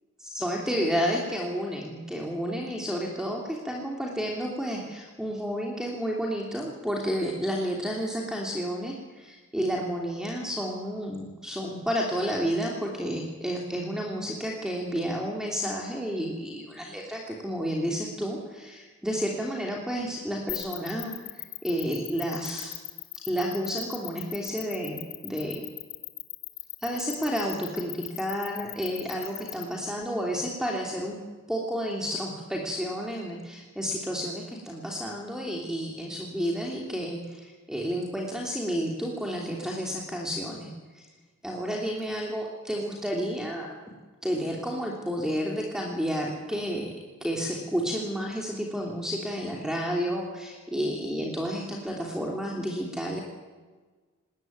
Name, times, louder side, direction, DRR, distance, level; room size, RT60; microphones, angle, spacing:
voice 1, 0.2-22.7 23.2-25.6 26.8-31.2 31.5-41.1 41.4-43.9 44.2-46.9 47.2-53.2, equal, 5° right, -1 dB, 2.9 m, -31 dB
sound 1, 20.5-29.6, left 18 dB, 85° left, 1.8 m, -37 dB
20.0 x 19.5 x 9.4 m, 1.3 s
head